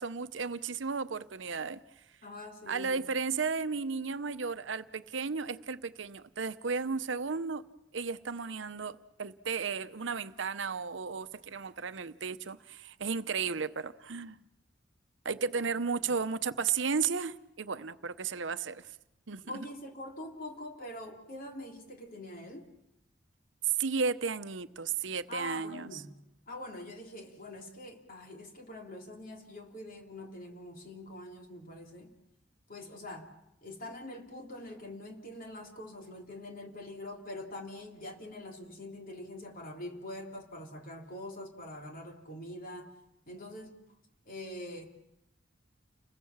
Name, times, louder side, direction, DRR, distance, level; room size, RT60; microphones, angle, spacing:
voice 1, 0.0-1.8 2.7-7.6 7.9-14.4 15.2-18.9 19.3-19.7 23.7-26.0, right 5 dB, 80° right, 0.8 m, -34 dB
voice 2, 2.2-3.0 16.0-16.1 19.5-22.7 25.3-26.1 26.5-32.2 32.7-33.3 33.6-42.9 43.3-43.7 44.3-44.9, left 1 dB, 50° left, 3.5 m, -44 dB
29.5 x 20.5 x 7.3 m
head